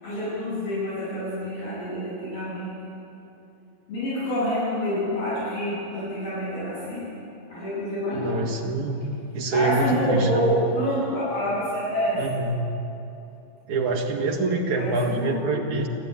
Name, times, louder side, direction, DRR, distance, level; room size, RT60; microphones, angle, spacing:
voice 1, 0.0-2.8 3.9-7.1 7.5-8.4 9.5-12.3 14.7-15.6, equal, 65° left, -10 dB, 9.5 m, -27 dB
voice 2, 8.1-9.0 9.3-10.5 12.2-12.7 13.7-15.9, right 3 dB, 55° right, 1 dB, 3.1 m, -25 dB
29.0 x 11.5 x 9.9 m, 2.9 s
omnidirectional pair, 4.4 m